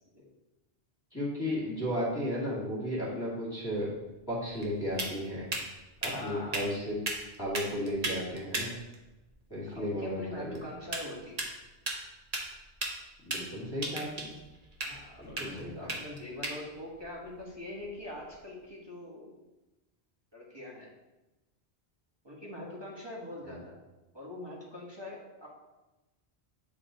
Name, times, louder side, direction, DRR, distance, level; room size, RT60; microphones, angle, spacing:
voice 1, 1.1-3.9 4.3-5.5 6.0-7.0 7.4-8.7 9.5-10.6 13.3-14.3 15.2-15.9 23.4-23.6, equal, 20° left, -7 dB, 2.1 m, -34 dB
sound 1, 3.7-18.4, right 2 dB, 40° right, 0.9 m, -39 dB
voice 2, 6.1-6.7 9.6-11.5 14.8-19.3 20.3-20.9 22.2-23.8 24.1-25.5, left 1 dB, 25° right, -4 dB, 1.4 m, -43 dB
8.5 x 3.0 x 4.0 m, 1.1 s
omnidirectional pair, 1.1 m